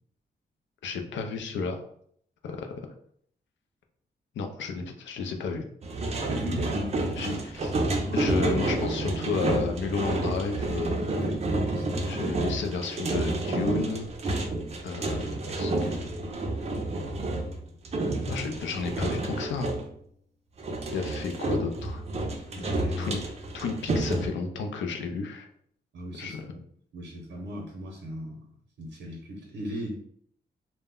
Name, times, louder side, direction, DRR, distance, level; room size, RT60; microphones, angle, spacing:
voice 1, 0.8-1.8 2.4-2.7 4.4-5.6 7.2-7.3 8.1-11.1 12.1-14.1 14.8-16.0 18.3-19.8 20.9-22.0 23.0-23.2 23.5-25.5 26.2-26.4, left 4 dB, 85° left, 5 dB, 0.4 m, -32 dB
sound 1, 5.8-19.9 20.6-24.3, right 2 dB, 35° right, 0.4 m, -30 dB
voice 2, 6.3-7.4 7.9-8.3 11.1-12.1 22.5-23.2 25.9-26.6 26.9-28.4 28.8-30.0, equal, 80° right, -1 dB, 0.6 m, -38 dB
2.1 x 2.0 x 3.5 m, 0.65 s
wide cardioid pair, 115°, 19 cm